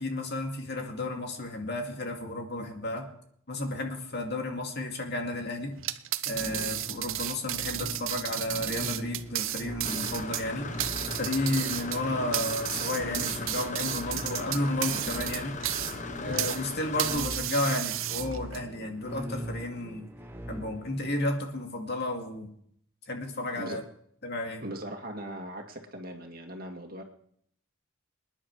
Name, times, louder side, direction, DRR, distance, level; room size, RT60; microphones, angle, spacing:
voice 1, 0.0-3.1 3.5-5.8 6.3-10.7 11.2-15.6 16.2-20.1 20.5-22.5 23.1-23.8 24.2-24.6, left 1 dB, 50° left, 3 dB, 2.3 m, -32 dB
sound 1, 5.8-16.6 17.0-18.6, right 14 dB, 65° right, 0.7 m, -33 dB
sound 2, 6.3-21.1, equal, 10° right, 1.0 m, -42 dB
Engine / Mechanisms, 9.8-17.2, left 4 dB, 35° left, 0.9 m, -39 dB
voice 2, 24.6-27.0, right 1 dB, 45° right, 3 dB, 2.2 m, -39 dB
26.0 x 10.5 x 4.8 m, 0.66 s
head